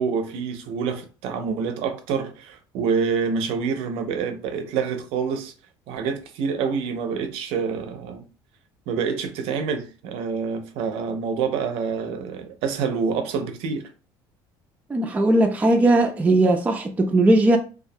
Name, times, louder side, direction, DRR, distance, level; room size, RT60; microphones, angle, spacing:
voice 1, 0.0-5.5 5.9-8.2 8.9-13.9, right 5 dB, 75° right, 0.5 m, -27 dB
voice 2, 14.9-17.6, right 1 dB, 15° right, 0.3 m, -18 dB
2.3 x 2.1 x 2.6 m
supercardioid pair, 100°, 10 cm